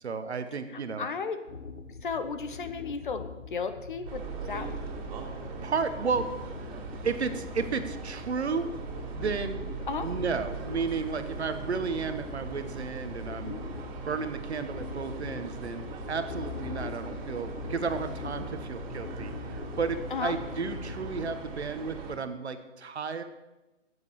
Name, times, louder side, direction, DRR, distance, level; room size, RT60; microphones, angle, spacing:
voice 1, 0.0-1.1 5.6-6.3 7.0-8.7 9.1-9.7 10.0-13.6 14.1-23.2, right 5 dB, 60° right, 10 dB, 1.0 m, -33 dB
voice 2, 0.7-1.4 2.0-4.7 9.9-10.1 13.4-13.6 20.1-20.3, left 5 dB, 40° left, 9 dB, 0.8 m, -34 dB
sound 1, 1.5-21.4, left 5 dB, 90° left, 1.1 m, -42 dB
sound 2, 4.1-22.2, right 5 dB, 35° right, 3.1 m, -40 dB
8.1 x 7.8 x 7.2 m, 1.0 s
figure-of-eight pair, 140°, 38 cm